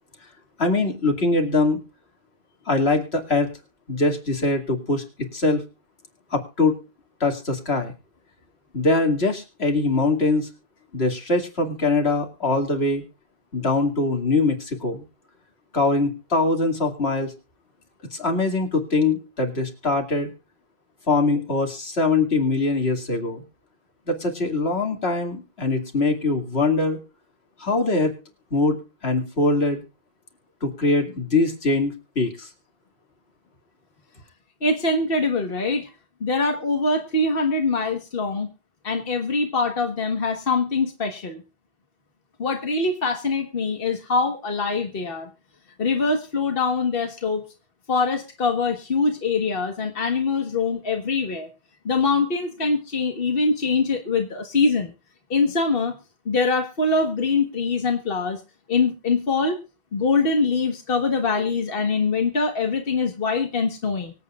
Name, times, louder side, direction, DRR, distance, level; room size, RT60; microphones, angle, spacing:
voice 1, 0.6-1.8 2.7-3.5 3.9-5.6 6.3-6.8 7.2-7.9 8.7-10.5 10.9-13.0 13.5-15.0 15.7-17.3 18.1-20.3 21.1-23.4 24.1-27.0 27.6-28.2 28.5-29.8 30.6-32.5, left 3 dB, 90° left, 3 dB, 2.7 m, -22 dB
voice 2, 34.6-35.9 36.2-38.5 38.8-41.4 42.4-45.3 45.8-47.4 47.9-51.5 51.8-54.9 55.3-56.0 56.2-58.4 58.7-59.6 59.9-64.1, left 3 dB, 65° left, 4 dB, 1.7 m, -23 dB
24.5 x 8.4 x 2.4 m, 0.31 s
omnidirectional pair, 1.0 m